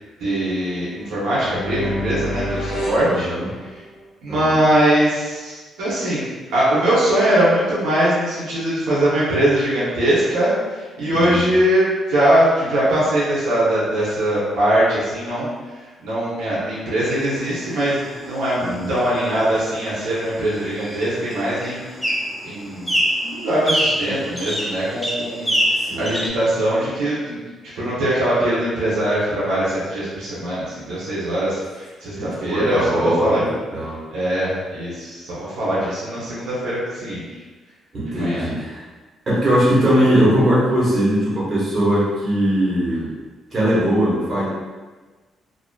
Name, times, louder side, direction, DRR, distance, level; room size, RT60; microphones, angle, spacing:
voice 1, 0.2-3.3 4.2-6.2 6.5-10.5 11.0-15.5 16.0-21.8 22.4-25.5 25.9-27.4 27.8-33.4 34.1-37.2 38.1-38.4, right 1 dB, 85° right, -9 dB, 0.8 m, -21 dB
sound 1, 1.0-4.0, left 1 dB, 90° left, 0.7 m, -29 dB
voice 2, 3.0-3.5 4.3-4.6 11.1-11.5 18.6-18.9 25.8-26.0 32.2-34.0 37.9-38.8 39.3-43.1 43.5-44.4, equal, 40° right, -8 dB, 1.2 m, -20 dB
sound 2, 17.1-26.3, equal, ahead, 0.5 m, -26 dB
2.6 x 2.4 x 2.2 m, 1.3 s
cardioid pair, 90°, 0 cm